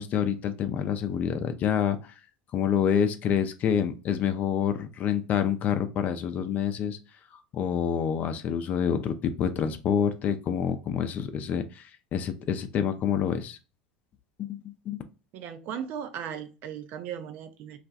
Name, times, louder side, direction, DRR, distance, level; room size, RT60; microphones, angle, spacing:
voice 1, 0.0-2.0 2.5-7.0 7.5-11.8 12.1-13.6 14.4-14.6 14.9-15.0, left 8 dB, 45° left, 0.5 m, -27 dB
voice 2, 15.3-17.8, right 8 dB, 55° right, 0.5 m, -37 dB
2.4 x 2.2 x 3.9 m
hypercardioid pair, 85°, 4 cm